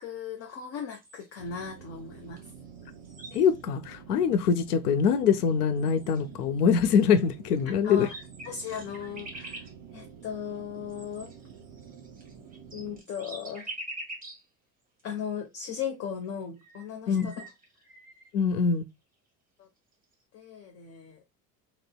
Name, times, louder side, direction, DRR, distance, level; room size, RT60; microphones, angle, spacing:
voice 1, 0.0-2.4 7.8-11.3 12.7-13.7 15.0-17.5 19.6-19.7 20.3-21.2, left 7 dB, 30° left, 0.5 m, -37 dB
sound 1, 0.9-1.5 2.4-2.5 2.8-3.8 4.6-4.7 5.4-5.5 5.8-6.4 7.5-7.6 7.9-9.7 10.9-14.4 15.0-15.1 16.2-16.3 16.6-18.3, right 1 dB, 20° right, 1.0 m, -45 dB
sound 2, 1.4-13.0, right 7 dB, 50° right, 0.6 m, -49 dB
voice 2, 3.3-8.1 17.1-17.3 18.3-18.8, left 6 dB, 75° left, 0.5 m, -24 dB
3.7 x 2.1 x 2.2 m
figure-of-eight pair, 65°, 47 cm